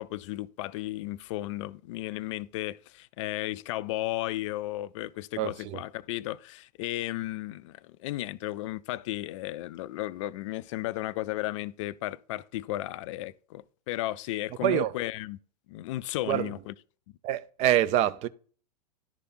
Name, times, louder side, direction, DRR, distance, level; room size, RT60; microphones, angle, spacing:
voice 1, 0.0-15.4 15.7-16.7, left 16 dB, 45° left, 0.5 m, -34 dB
voice 2, 5.4-5.8 14.6-15.0 16.3-16.5 17.2-18.3, right 12 dB, 30° right, 0.5 m, -26 dB
11.0 x 5.0 x 4.4 m
figure-of-eight pair, 100°, 21 cm